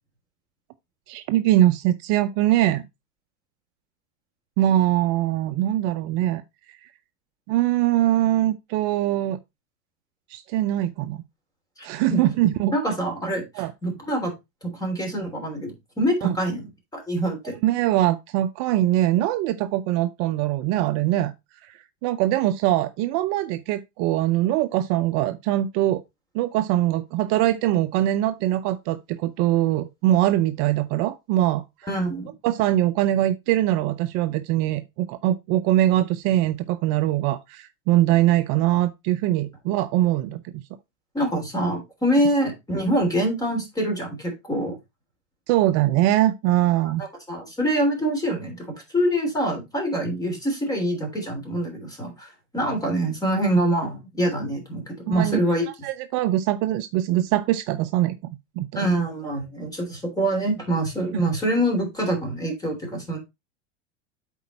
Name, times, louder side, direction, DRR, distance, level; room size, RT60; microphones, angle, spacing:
voice 1, 1.1-2.8 4.6-6.4 7.5-9.4 10.3-11.2 11.8-12.7 13.6-13.7 16.2-16.4 17.6-21.3 21.6-26.0 26.3-31.6 32.4-40.6 45.5-47.0 55.1-55.6 55.8-58.2 58.6-58.9 61.1-61.2, right 13 dB, 45° right, 0.6 m, -22 dB
voice 2, 11.8-12.2 12.7-14.3 14.7-16.6 16.9-17.6 31.9-32.3 41.1-44.8 46.8-55.7 58.7-63.2, right 1 dB, 10° left, 3.1 m, -25 dB
8.2 x 4.4 x 4.1 m
supercardioid pair, 140°, 35 cm